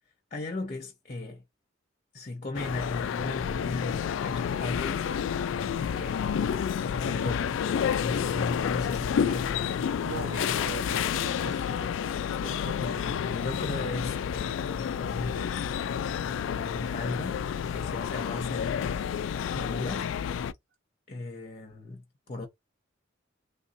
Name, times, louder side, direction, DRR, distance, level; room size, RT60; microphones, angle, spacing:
voice 1, 0.3-1.4 2.1-5.0 5.9-7.6 8.0-10.6 12.8-15.8 16.6-17.4 17.7-18.9 19.2-20.1 21.1-22.0 22.3-22.5, left 2 dB, 40° left, 0.8 m, -37 dB
sound 1, 2.5-20.5, left 8 dB, 80° left, 0.3 m, -30 dB
voice 2, 5.6-5.9 10.0-11.9 12.4-13.0, right 4 dB, 80° right, 0.7 m, -41 dB
3.5 x 2.6 x 2.6 m
head